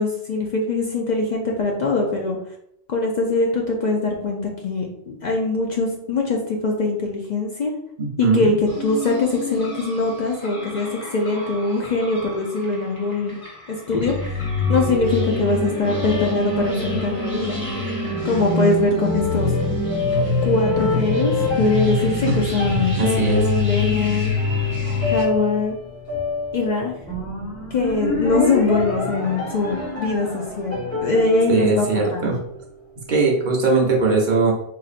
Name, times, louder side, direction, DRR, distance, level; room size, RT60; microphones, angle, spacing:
voice 1, 0.0-2.4 2.9-7.7 8.2-8.5 8.8-10.9 11.1-13.4 13.7-17.6 18.0-19.5 20.4-24.3 25.1-25.7 26.5-26.9 27.7-32.3, left 3 dB, 55° left, 0 dB, 0.6 m, -22 dB
voice 2, 8.0-8.6 22.3-22.4 23.0-23.4 31.5-32.4 33.1-34.5, right 4 dB, 55° right, -1 dB, 0.8 m, -19 dB
sound 1, 8.7-25.2, left 3 dB, 20° right, 1.2 m, -26 dB
sound 2, 14.1-32.7, left 2 dB, 15° left, 0.9 m, -29 dB
4.1 x 2.6 x 2.5 m, 0.74 s
omnidirectional pair, 1.1 m